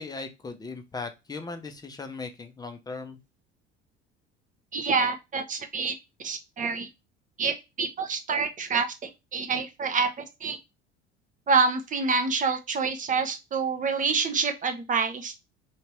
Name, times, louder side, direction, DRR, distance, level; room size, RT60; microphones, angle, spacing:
voice 1, 0.0-3.2, left 4 dB, 10° left, 6 dB, 0.6 m, -38 dB
voice 2, 4.7-5.9 6.2-6.9 7.4-10.6 11.5-15.3, right 4 dB, 25° right, 6 dB, 0.7 m, -27 dB
3.5 x 2.8 x 3.0 m, 0.24 s
figure-of-eight pair, 65°, 33 cm